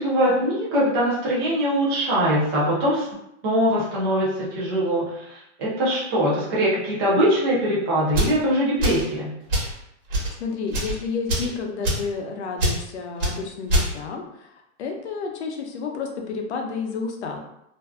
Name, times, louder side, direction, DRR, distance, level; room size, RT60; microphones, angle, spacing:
voice 1, 0.0-3.1 3.4-9.3, equal, 20° right, -7 dB, 0.5 m, -22 dB
sound 1, 8.1-8.4 8.8-9.1 9.5-9.7 10.1-10.3 10.7-10.9 11.3-11.5 11.8-12.1 12.6-12.8 13.2-13.3 13.7-13.9, equal, 45° right, 1.2 m, -23 dB
voice 2, 10.4-17.4, left 5 dB, 65° left, 3 dB, 0.6 m, -31 dB
2.6 x 2.2 x 2.3 m, 0.79 s
hypercardioid pair, 170°, 37 cm